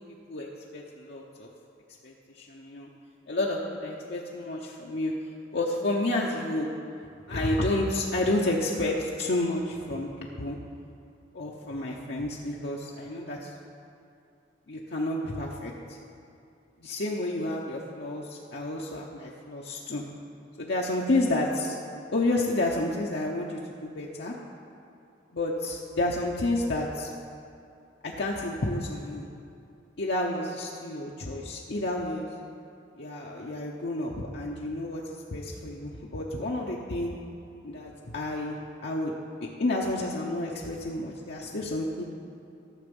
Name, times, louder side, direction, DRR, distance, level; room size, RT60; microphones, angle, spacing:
voice 1, 0.0-1.5 2.0-2.9 3.3-5.1 5.5-6.7 7.3-10.6 11.3-13.5 14.7-16.0 16.8-20.0 20.6-21.8 22.1-24.3 25.3-27.1 28.0-29.3 30.0-32.3 33.0-35.0 35.3-37.1 37.6-39.1 39.4-42.0, left 2 dB, 60° left, -2 dB, 0.8 m, -30 dB
13.0 x 6.8 x 5.3 m, 2.5 s
head